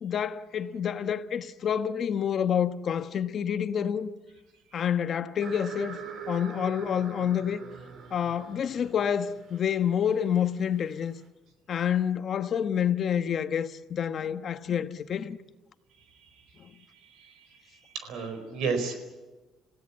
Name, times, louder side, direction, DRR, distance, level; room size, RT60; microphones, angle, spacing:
voice 1, 0.0-4.1 4.7-6.0 6.3-7.6 8.1-11.1 11.7-15.4 16.6-16.7, left 8 dB, 45° left, 1.1 m, -28 dB
sound 1, 5.4-11.2, right 6 dB, 55° right, 3.2 m, -44 dB
voice 2, 16.1-16.4 16.9-17.6 17.8-18.9, right 5 dB, 80° right, 4.4 m, -34 dB
27.5 x 16.5 x 8.5 m
cardioid pair, 130°, 0 cm